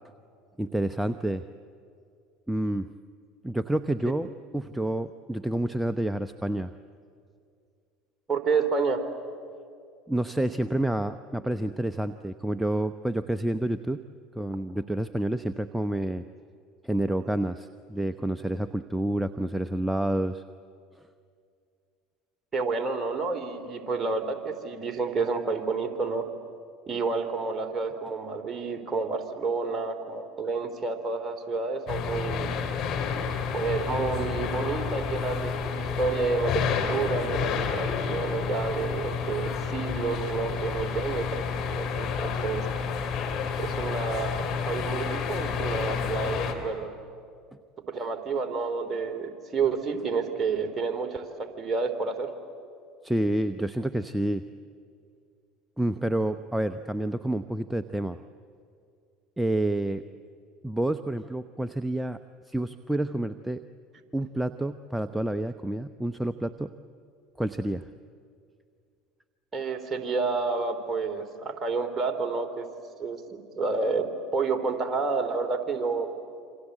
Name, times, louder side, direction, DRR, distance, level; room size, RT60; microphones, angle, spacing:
voice 1, 0.6-1.4 2.5-2.9 3.4-6.7 10.1-14.0 14.4-16.2 16.8-20.4 53.0-54.4 55.8-58.2 59.4-60.0 60.6-62.2 62.5-63.6 64.1-66.7 67.4-67.9, right 1 dB, 5° right, 11 dB, 0.8 m, -29 dB
voice 2, 8.3-9.0 22.5-26.3 26.9-32.5 33.5-41.4 41.7-42.6 43.6-46.9 47.9-52.3 69.5-72.7 73.0-76.1, right 4 dB, 25° right, 5 dB, 3.5 m, -29 dB
sound 1, 31.9-46.5, left 6 dB, 55° left, 3.4 m, -30 dB
27.5 x 26.0 x 8.1 m, 2.3 s
hypercardioid pair, 70°, 0 cm